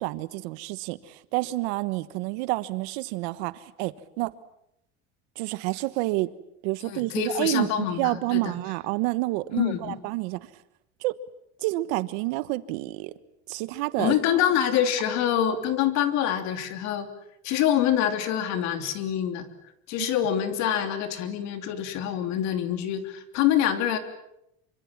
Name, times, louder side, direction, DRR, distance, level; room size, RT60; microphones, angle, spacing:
voice 1, 0.0-4.3 5.4-6.3 6.6-10.5 11.0-11.1 11.6-13.1 13.5-14.1, right 19 dB, 80° right, 1.4 m, -29 dB
voice 2, 6.8-8.5 9.5-10.0 14.0-17.1 17.4-19.5 19.9-24.0, left 10 dB, 55° left, 3.3 m, -25 dB
26.5 x 25.0 x 7.4 m
cardioid pair, 155°, 32 cm